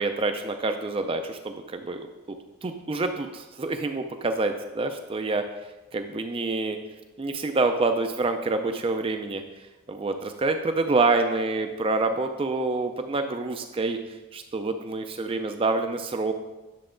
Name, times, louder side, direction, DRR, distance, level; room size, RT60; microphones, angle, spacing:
voice 1, 0.0-2.4 2.6-5.5 5.9-6.8 7.2-9.4 9.9-14.0 14.3-16.3, right 3 dB, 25° right, 6 dB, 0.4 m, -27 dB
10.0 x 6.7 x 3.8 m, 1.1 s
head